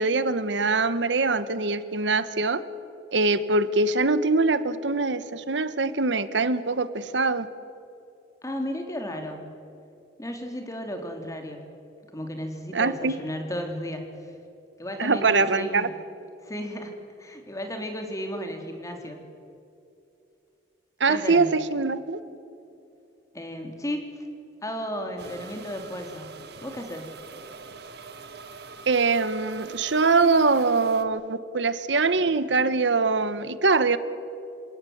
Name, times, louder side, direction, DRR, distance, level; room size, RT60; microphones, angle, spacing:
voice 1, 0.0-2.6 3.1-7.5 12.7-13.2 15.0-15.9 21.0-22.2 28.9-34.0, right 3 dB, 90° right, 13 dB, 1.2 m, -23 dB
voice 2, 8.4-9.6 10.2-11.6 12.1-14.3 14.8-15.9 16.4-19.2 21.1-21.5 23.3-24.3 24.6-26.3 26.6-27.1, equal, 20° left, 4 dB, 3.3 m, -34 dB
sound 1, 25.2-31.0, right 4 dB, 65° right, 1.7 m, -44 dB
27.5 x 17.5 x 9.4 m, 2.6 s
head